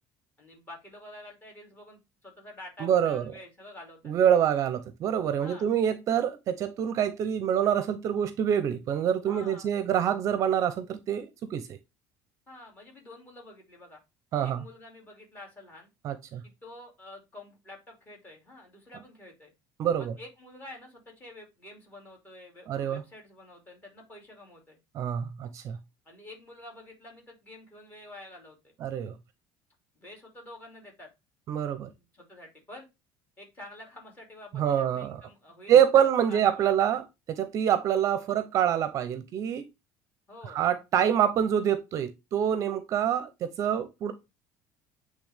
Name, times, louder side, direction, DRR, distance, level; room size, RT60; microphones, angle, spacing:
voice 1, 0.4-4.1 5.4-5.7 9.3-9.7 12.5-14.0 14.4-15.9 16.4-19.5 20.0-24.8 26.0-28.7 29.9-31.1 31.9-32.9 33.4-36.7 40.3-40.6, left 1 dB, 20° left, 2.5 m, -48 dB
voice 2, 2.8-3.3 4.0-11.8 14.3-14.6 16.0-16.4 19.8-20.1 22.7-23.0 24.9-25.8 28.8-29.1 31.5-31.9 34.5-35.2 35.7-37.0 37.3-39.7 40.5-44.1, right 9 dB, 40° right, 0.6 m, -26 dB
8.4 x 3.3 x 3.4 m
cardioid pair, 170°, 8 cm